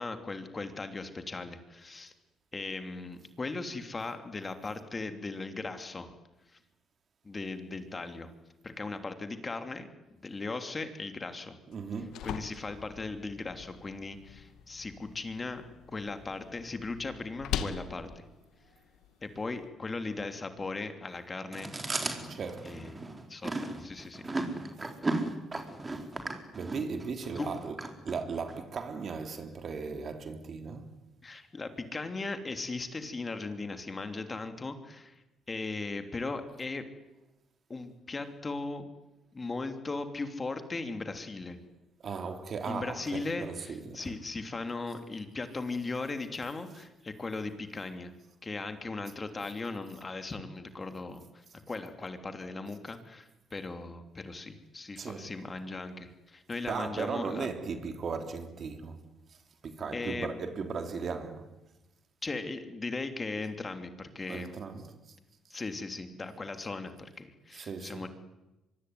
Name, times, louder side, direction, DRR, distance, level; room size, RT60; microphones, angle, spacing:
voice 1, 0.0-2.1 2.5-6.1 7.2-8.3 8.6-9.9 10.2-11.6 12.2-15.6 15.9-18.2 19.2-21.8 22.6-23.0 23.3-24.2 27.4-27.5 31.2-35.2 35.5-36.9 37.7-38.8 39.3-41.6 42.7-48.1 48.4-57.5 59.9-60.3 62.2-64.6 65.5-68.1, left 3 dB, 25° left, 3.1 m, -38 dB
sound 1, 11.7-19.7, left 9 dB, 80° left, 2.3 m, -42 dB
voice 2, 11.7-12.2 22.3-22.7 26.5-30.9 42.0-44.2 55.0-55.3 56.7-59.0 59.6-61.5 64.3-64.9 67.5-68.1, right 5 dB, 50° right, 3.7 m, -37 dB
Chewing mastication, 21.5-28.6, right 2 dB, 20° right, 4.4 m, -35 dB
24.5 x 24.0 x 9.7 m
cardioid pair, 95°, 0 cm